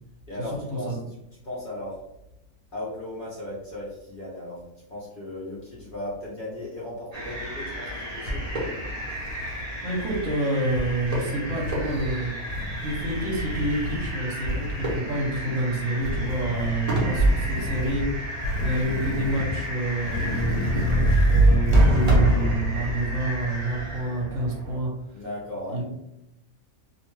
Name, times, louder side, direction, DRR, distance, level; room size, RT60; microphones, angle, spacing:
voice 1, 0.3-1.0 1.4-2.0 2.7-4.6 4.9-8.5 16.4-16.7 25.1-25.8, left 1 dB, 50° left, -6 dB, 0.7 m, -36 dB
sound 1, 7.1-24.8, equal, 35° right, 0.7 m, -30 dB
sound 2, 9.1-10.3 10.7-11.1 11.6-12.1 12.5-14.1 14.4-14.9 16.0-16.7 17.1-18.0 18.4-19.6 20.0-22.3, right 1 dB, 85° left, 1.1 m, -25 dB
voice 2, 9.8-24.9 25.7-25.8, right 1 dB, 70° right, -1 dB, 1.0 m, -28 dB
2.6 x 2.2 x 3.0 m, 0.84 s
omnidirectional pair, 1.4 m